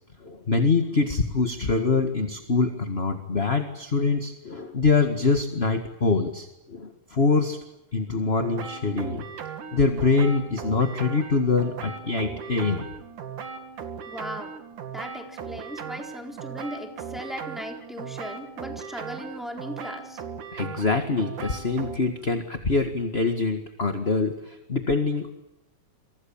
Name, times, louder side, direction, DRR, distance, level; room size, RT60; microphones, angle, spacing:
voice 1, 0.2-7.6 7.9-9.2 9.7-12.9 20.5-25.3, left 4 dB, 25° left, 6 dB, 1.5 m, -24 dB
sound 1, 8.4-22.0, right 6 dB, 80° right, 3.8 m, -38 dB
voice 2, 14.1-14.5 14.9-20.2, equal, ahead, 3 dB, 3.8 m, -38 dB
29.5 x 24.5 x 7.3 m, 0.89 s
omnidirectional pair, 3.5 m